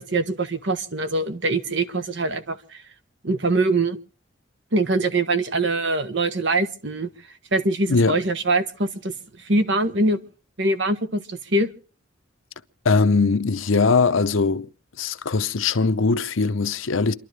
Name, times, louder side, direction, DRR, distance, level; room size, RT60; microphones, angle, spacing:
voice 1, 0.0-2.8 3.2-4.0 4.7-7.1 7.5-9.1 9.4-10.2 10.6-11.7, right 2 dB, 60° right, 1.2 m, -23 dB
voice 2, 7.9-8.2 12.8-14.7 15.0-17.1, left 4 dB, 80° left, 0.8 m, -20 dB
28.5 x 12.0 x 3.3 m
head